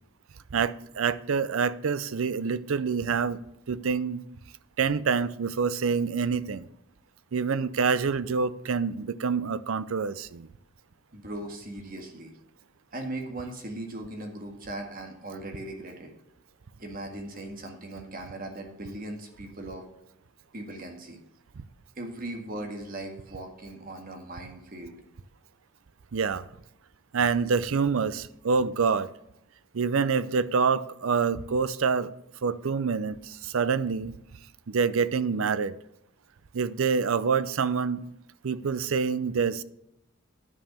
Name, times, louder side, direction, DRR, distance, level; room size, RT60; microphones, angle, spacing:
voice 1, 0.5-3.4 3.7-4.2 4.8-6.7 7.3-10.5 26.1-26.5 27.1-29.1 29.7-32.1 32.4-34.2 34.7-35.7 36.5-38.1 38.4-39.6, right 5 dB, 70° right, 0.5 m, -26 dB
voice 2, 11.1-12.3 12.9-16.1 16.8-19.8 20.5-21.2 21.9-25.0, right 1 dB, 40° right, 1.7 m, -38 dB
9.9 x 5.4 x 7.2 m
head